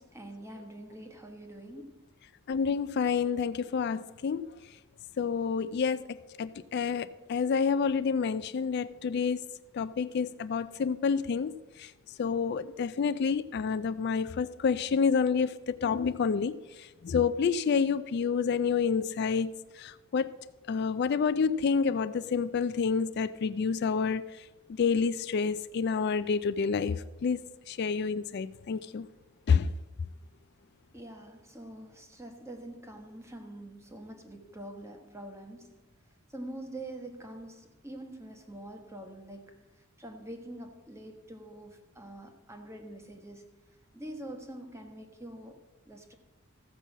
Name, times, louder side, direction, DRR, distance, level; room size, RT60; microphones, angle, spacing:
voice 1, 0.0-2.0 30.9-35.8 36.3-39.7 40.0-43.6 43.9-45.6 45.8-46.2, right 1 dB, 15° right, 1.2 m, -45 dB
voice 2, 2.5-4.5 5.2-9.5 9.7-11.5 11.8-11.9 12.2-19.5 19.8-20.3 20.7-24.2 24.8-29.1 29.5-29.7, left 5 dB, 50° left, 0.3 m, -28 dB
14.5 x 5.5 x 7.3 m
head